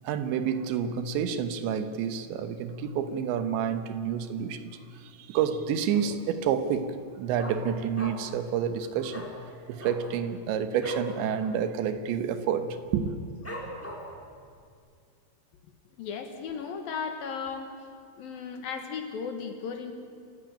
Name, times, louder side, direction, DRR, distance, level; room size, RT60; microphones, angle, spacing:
voice 1, 0.0-9.3 9.7-13.1, right 8 dB, 80° right, 10 dB, 3.4 m, -29 dB
Dog, 5.9-6.3 6.6-6.7 7.0-8.4 8.7-8.8 9.1-9.3 9.7-11.1 11.5-11.6 11.9-12.3 12.8-12.9 13.4-14.2 14.7-14.8, equal, 5° left, 2.6 m, -40 dB
voice 2, 16.0-17.7 18.2-19.9, left 6 dB, 65° left, 6 dB, 2.7 m, -35 dB
27.5 x 16.0 x 9.0 m, 2.3 s
omnidirectional pair, 5.2 m